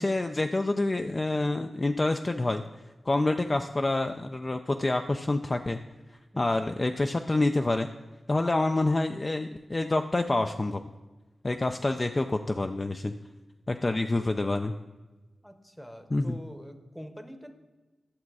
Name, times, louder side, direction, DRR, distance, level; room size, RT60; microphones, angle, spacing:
voice 1, 0.0-2.6 3.1-5.8 6.4-7.9 8.3-10.8 11.4-13.1 13.7-14.7 16.1-16.4, left 2 dB, 25° left, 6 dB, 0.3 m, -27 dB
voice 2, 6.3-6.7 15.4-17.5, equal, ahead, 8 dB, 0.8 m, -45 dB
11.5 x 7.2 x 4.7 m, 1.2 s
wide cardioid pair, 140°, 0 cm